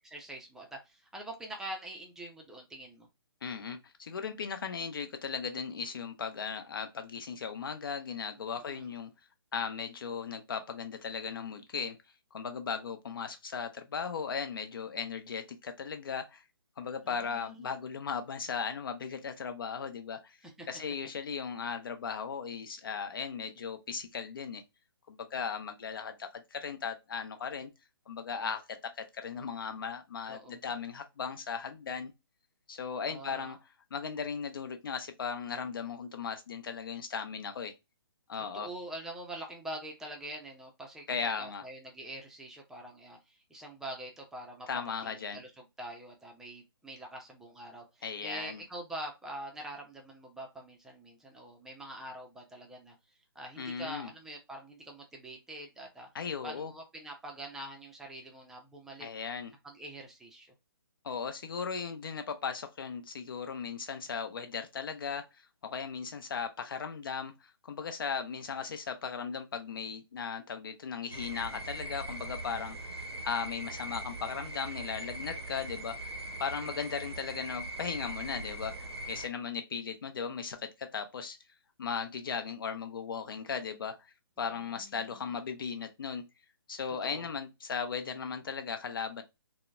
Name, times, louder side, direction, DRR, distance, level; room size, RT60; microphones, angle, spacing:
voice 1, 0.1-3.1 8.6-8.9 17.0-17.7 20.6-20.7 30.3-30.6 33.0-33.6 38.4-41.1 41.4-52.9 53.3-56.1 56.4-59.1 59.6-60.5 76.6-76.8 84.4-85.3 86.9-87.3, right 1 dB, 5° right, 0.5 m, -45 dB
voice 2, 3.4-9.1 9.5-12.0 12.3-16.4 16.8-20.4 20.7-24.6 25.1-27.7 28.1-32.1 32.7-33.6 33.9-37.7 38.3-38.7 41.1-41.6 44.7-45.4 48.0-48.6 53.6-54.1 56.1-56.7 59.0-59.5 61.0-65.2 65.6-72.9 73.2-76.1 76.4-81.4 81.8-86.2 86.7-89.2, left 6 dB, 60° left, 0.7 m, -37 dB
sound 1, 71.1-79.3, right 1 dB, 85° right, 0.7 m, -41 dB
3.8 x 2.1 x 2.3 m
figure-of-eight pair, 140°, 13 cm